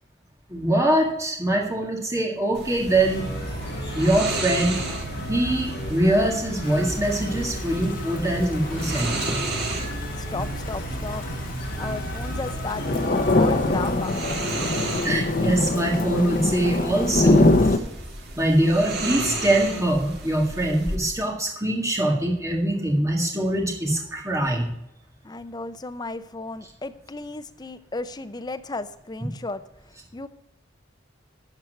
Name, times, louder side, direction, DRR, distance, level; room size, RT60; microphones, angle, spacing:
voice 1, 0.5-3.3 3.9-4.9 5.3-9.3 15.0-17.8 18.4-24.7, right 1 dB, 15° right, 0 dB, 1.8 m, -23 dB
sound 1, 2.5-21.0, right 2 dB, 55° right, 1.8 m, -35 dB
sound 2, 2.8-13.9, equal, 55° left, 4.2 m, -32 dB
Thunder / Rain, 6.6-17.8, left 2 dB, 40° left, 0.8 m, -24 dB
voice 2, 10.2-11.4 11.8-14.2 25.2-29.6 30.1-30.3, left 3 dB, 20° left, 11 dB, 0.5 m, -34 dB
12.5 x 4.5 x 7.8 m, 0.79 s
head